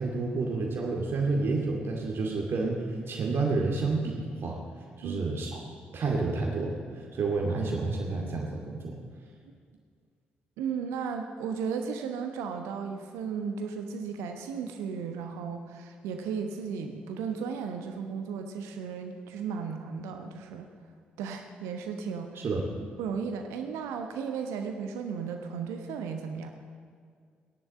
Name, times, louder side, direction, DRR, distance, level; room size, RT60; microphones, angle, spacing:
voice 1, 0.0-4.6 5.0-5.6 5.9-9.0 22.4-22.6, right 3 dB, 50° right, -1 dB, 2.3 m, -29 dB
voice 2, 10.6-20.7 21.2-22.4 23.0-26.5, right 6 dB, 70° right, 5 dB, 1.1 m, -35 dB
16.5 x 11.0 x 7.5 m, 2.1 s
figure-of-eight pair, 40°, 5 cm